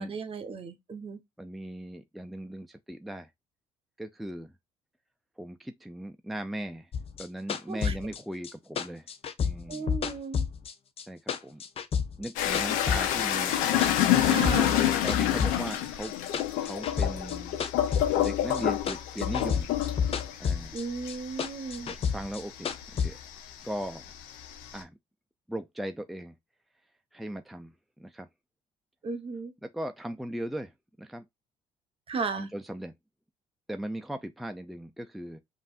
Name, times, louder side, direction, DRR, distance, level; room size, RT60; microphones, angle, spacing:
voice 1, 0.0-1.2 7.7-7.9 9.7-10.5 14.2-14.9 20.7-21.9 29.0-29.5 32.1-32.5, right 4 dB, 45° right, 1.1 m, -35 dB
voice 2, 1.4-3.3 4.0-4.5 5.4-6.9 7.2-9.1 9.4-9.9 11.1-11.6 12.2-14.6 15.0-16.1 16.6-17.6 18.2-19.7 20.4-20.8 21.8-23.2 23.6-24.1 24.7-24.9 25.5-26.3 27.1-28.3 29.6-30.7 31.0-31.3 32.3-32.9 33.7-35.4, right 1 dB, ahead, 0.5 m, -38 dB
sound 1, 6.9-11.0 11.3-13.2 13.5-14.8 15.1-18.6 18.9-20.8 21.1-23.1, left 6 dB, 45° left, 0.7 m, -31 dB
sound 2, 12.4-23.3 23.7-24.8, left 11 dB, 80° left, 0.7 m, -27 dB
5.3 x 2.7 x 2.4 m
supercardioid pair, 65°, 14 cm